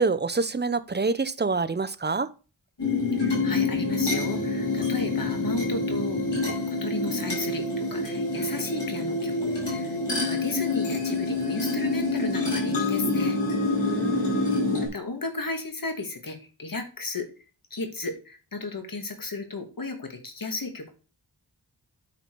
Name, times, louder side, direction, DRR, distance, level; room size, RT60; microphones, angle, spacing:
voice 1, 0.0-2.3 13.8-14.5, right 4 dB, 25° right, 0.8 m, -26 dB
sound 1, 2.8-14.9, left 2 dB, 90° left, 5.1 m, -27 dB
voice 2, 3.1-13.4 14.8-17.3 17.7-20.9, left 3 dB, 50° left, 2.1 m, -34 dB
9.1 x 5.8 x 4.6 m
wide cardioid pair, 60°, 42 cm